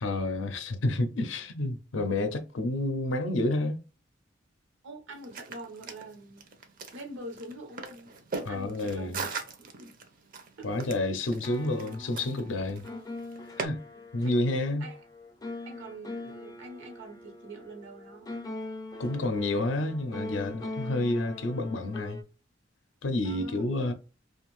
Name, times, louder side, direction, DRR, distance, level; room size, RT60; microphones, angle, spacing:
voice 1, 0.0-3.8 8.4-9.2 10.6-12.9 13.6-13.8 14.1-14.8 19.0-22.2 23.0-23.9, left 2 dB, 80° left, 0.5 m, -29 dB
voice 2, 4.8-6.4 6.9-8.1 8.5-9.9 10.6-10.8 13.9-14.3 14.8-15.0 15.7-18.3 23.2-23.7, right 1 dB, 85° right, 0.9 m, -44 dB
sound 1, 5.1-13.7, right 4 dB, 45° right, 0.5 m, -40 dB
sound 2, 11.2-22.2, left 2 dB, 20° left, 0.4 m, -42 dB
2.6 x 2.3 x 3.0 m
head